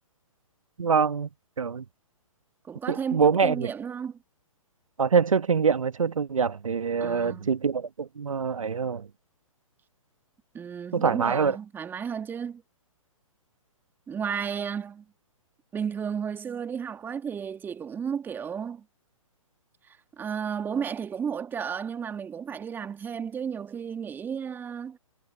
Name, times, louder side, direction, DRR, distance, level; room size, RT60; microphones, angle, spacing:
voice 1, 0.8-1.3 1.6-1.8 2.9-3.7 5.0-9.1 10.9-11.6, right 6 dB, 70° right, 1.2 m, -24 dB
voice 2, 2.7-4.2 7.0-7.5 10.5-12.6 14.1-15.1 15.7-18.8 19.9-25.0, right 7 dB, 10° right, 2.0 m, -33 dB
figure-of-eight pair, 125°, 18 cm